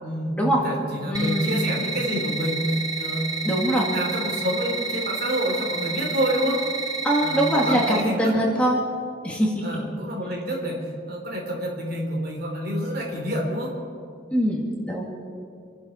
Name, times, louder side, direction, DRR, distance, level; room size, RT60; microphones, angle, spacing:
voice 1, 0.0-3.4 3.9-6.7 7.2-8.4 9.6-13.7, equal, 50° right, 0 dB, 3.3 m, -28 dB
voice 2, 1.1-1.6 3.4-3.9 7.0-8.8 9.2-9.5 14.3-15.1, equal, 5° left, -3 dB, 2.1 m, -22 dB
sound 1, 1.1-8.0, right 5 dB, 20° right, 0.8 m, -30 dB
27.0 x 11.0 x 4.4 m, 2.3 s
head